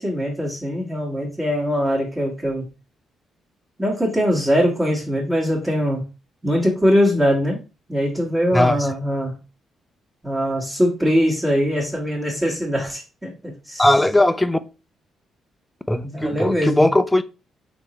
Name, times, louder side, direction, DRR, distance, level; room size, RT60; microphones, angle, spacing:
voice 1, 0.0-2.7 3.8-6.1 6.4-7.6 7.9-9.3 10.2-13.8 16.0-16.9, equal, 20° right, 1.4 m, -22 dB
voice 2, 8.5-8.9 13.8-14.6 15.9-17.2, left 1 dB, 10° left, 0.4 m, -18 dB
3.7 x 2.9 x 4.2 m
cardioid pair, 90°, 0 cm